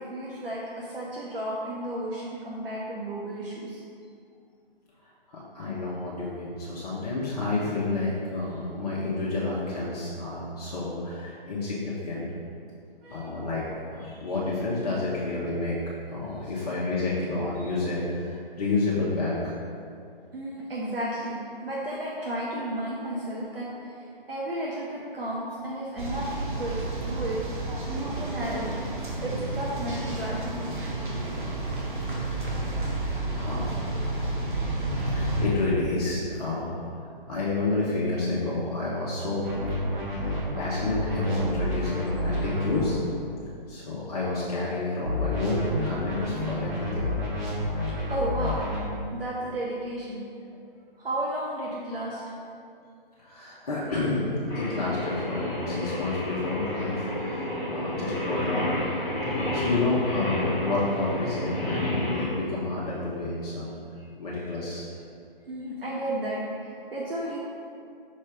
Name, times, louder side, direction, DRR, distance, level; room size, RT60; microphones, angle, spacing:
voice 1, 0.0-3.8 13.0-13.4 20.3-24.0 24.3-27.4 28.0-28.7 29.2-30.6 48.1-48.6 49.1-50.2 51.0-52.2 63.9-64.1 65.5-67.4, right 1 dB, 75° right, -5 dB, 1.2 m, -33 dB
voice 2, 5.3-12.3 13.1-15.8 16.1-19.5 32.4-32.5 33.3-33.8 35.1-36.7 37.3-39.5 40.1-43.0 43.7-47.1 53.2-54.3 54.5-58.9 59.3-63.8 64.2-64.8, left 3 dB, 40° left, -7 dB, 1.1 m, -30 dB
sound 1, 26.0-35.5, right 2 dB, 55° right, 1.4 m, -31 dB
sound 2, 39.4-42.9 45.0-48.8, left 1 dB, 10° right, 0.9 m, -29 dB
Singing, 54.5-62.2, left 1 dB, 5° left, 1.5 m, -30 dB
5.9 x 4.3 x 5.0 m, 2.4 s
figure-of-eight pair, 140°, 29 cm